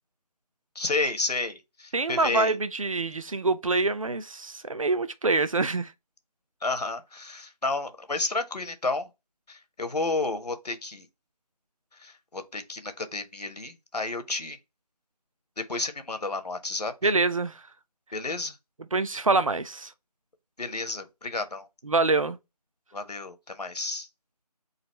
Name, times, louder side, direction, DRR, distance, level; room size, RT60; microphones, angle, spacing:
voice 1, 0.7-2.5 6.6-9.1 9.5-11.1 12.0-14.6 15.7-17.1 18.1-18.5 20.6-21.7 22.9-24.1, left 3 dB, 75° left, 1.1 m, -31 dB
voice 2, 1.9-5.9 17.0-17.6 18.9-19.9 21.8-22.4, right 3 dB, 55° right, 0.6 m, -25 dB
4.0 x 2.5 x 4.3 m
figure-of-eight pair, 165°, 21 cm